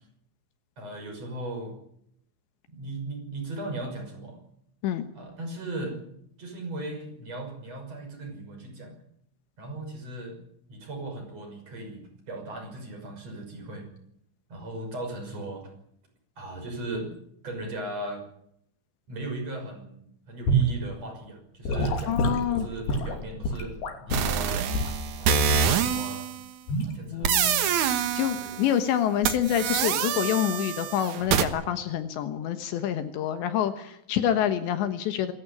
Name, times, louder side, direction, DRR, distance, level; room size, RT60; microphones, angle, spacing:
voice 1, 0.8-1.8 2.7-4.4 5.1-6.0 6.4-9.0 9.6-10.4 10.7-13.9 14.5-15.7 16.4-17.1 17.4-18.2 19.1-23.7 24.0-24.7 25.2-26.3 26.8-27.3 28.3-28.6, right 2 dB, 35° right, 3 dB, 6.8 m, -37 dB
Gurgling / Sink (filling or washing) / Liquid, 20.5-20.7 21.6-24.3 24.7-25.0 25.5-25.8 26.7-26.9, right 1 dB, 55° left, 4.6 m, -26 dB
voice 2, 22.1-22.7 27.1-27.7 28.1-35.3, left 10 dB, 75° left, 9 dB, 3.4 m, -27 dB
sound 1, 24.1-26.4 27.2-28.8 29.2-31.5, right 7 dB, 70° right, 1.9 m, -26 dB
25.5 x 14.0 x 10.0 m, 0.75 s
omnidirectional pair, 5.4 m